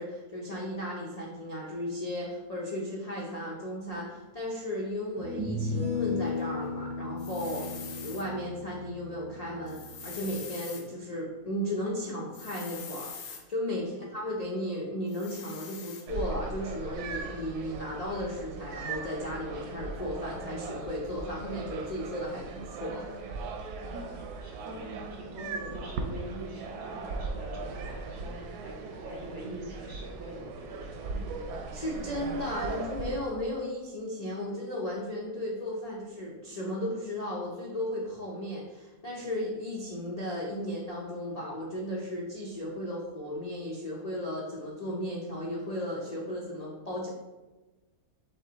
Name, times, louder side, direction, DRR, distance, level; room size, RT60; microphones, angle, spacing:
voice 1, 0.0-23.1 31.7-47.1, left 1 dB, 45° left, -5 dB, 0.5 m, -35 dB
sound 1, 4.1-4.2 5.2-10.4, left 3 dB, 70° right, 1.5 m, -35 dB
sound 2, 7.2-8.2 9.7-10.8 12.3-13.4 15.1-16.0, left 6 dB, 65° left, 1.0 m, -44 dB
voice 2, 7.4-7.8 13.8-14.1 23.9-31.2, right 1 dB, 50° right, -3 dB, 1.4 m, -44 dB
sound 3, 16.1-33.2, right 4 dB, 90° right, 1.1 m, -38 dB
6.1 x 2.2 x 3.9 m, 1.2 s
omnidirectional pair, 1.6 m